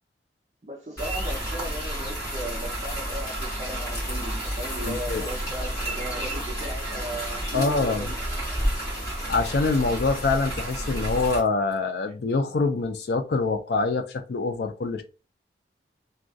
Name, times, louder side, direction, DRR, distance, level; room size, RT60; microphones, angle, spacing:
voice 1, 0.6-8.1, right 1 dB, 35° right, 0.5 m, -37 dB
sound 1, 1.0-11.4, right 1 dB, 20° left, 1.0 m, -30 dB
voice 2, 4.9-5.3 7.5-8.1 9.3-15.0, left 3 dB, 70° left, 0.4 m, -25 dB
2.3 x 2.3 x 2.6 m
head